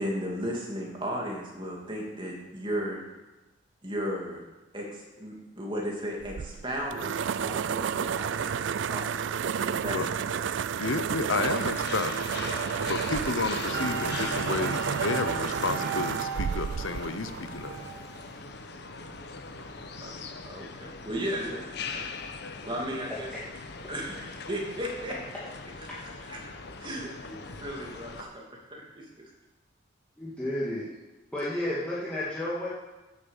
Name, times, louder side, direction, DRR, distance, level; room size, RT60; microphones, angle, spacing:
voice 1, 0.0-3.0 3.8-4.4 4.7-10.2 10.5-10.6 20.0-20.1 20.4-22.1 22.7-23.3 23.8-25.1 25.8-25.9 26.3-26.4 26.8-28.4 28.7-29.3, equal, 25° right, -2 dB, 2.8 m, -35 dB
sound 1, 6.2-18.0, right 7 dB, 65° right, 0.4 m, -31 dB
voice 2, 10.8-12.2 12.9-17.8, left 3 dB, 85° left, 11 dB, 0.9 m, -31 dB
sound 2, 11.4-28.2, left 4 dB, 60° left, 1.0 m, -41 dB
sound 3, 13.7-18.3, right 4 dB, 50° right, 1.7 m, -36 dB
voice 3, 30.2-30.9 31.3-32.7, left 1 dB, 5° left, -9 dB, 2.2 m, -31 dB
10.5 x 8.3 x 7.4 m, 1.1 s
head